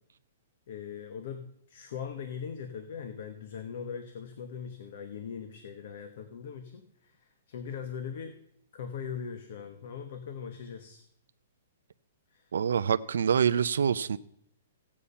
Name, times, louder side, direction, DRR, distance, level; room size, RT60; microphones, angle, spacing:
voice 1, 0.7-8.4 8.7-11.0 12.3-12.6, left 7 dB, 50° left, 1.2 m, -40 dB
voice 2, 12.5-14.2, right 7 dB, 90° right, 0.5 m, -26 dB
16.5 x 8.6 x 5.6 m
hypercardioid pair, 175°, 0 cm